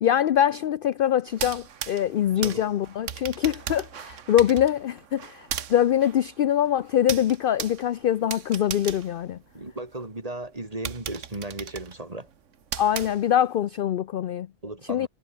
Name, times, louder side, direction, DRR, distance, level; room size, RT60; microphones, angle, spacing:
voice 1, 0.0-9.4 12.8-14.5 14.9-15.1, left 10 dB, 65° left, 0.5 m, -24 dB
sound 1, 1.3-10.0 10.4-10.5 10.8-13.6, right 8 dB, 65° right, 1.4 m, -37 dB
voice 2, 2.3-2.6 9.5-12.3 14.6-15.1, right 2 dB, 25° right, 3.0 m, -36 dB
omnidirectional pair, 1.4 m